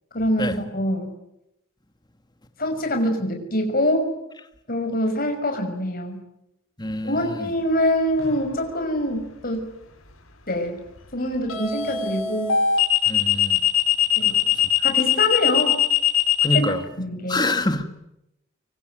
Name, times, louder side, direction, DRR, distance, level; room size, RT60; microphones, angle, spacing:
voice 1, 0.1-1.1 2.6-4.1 4.7-6.2 7.0-9.7 10.5-10.8 11.1-12.6 14.2-14.4 14.8-15.8 16.5-17.4, left 1 dB, 45° left, 6.1 m, -24 dB
voice 2, 6.8-7.2 13.1-13.6 16.4-16.8 17.3-17.8, left 1 dB, 20° left, 2.1 m, -25 dB
sound 1, 8.2-8.5 11.5-16.6, left 9 dB, 80° left, 5.1 m, -20 dB
25.0 x 24.5 x 9.3 m
head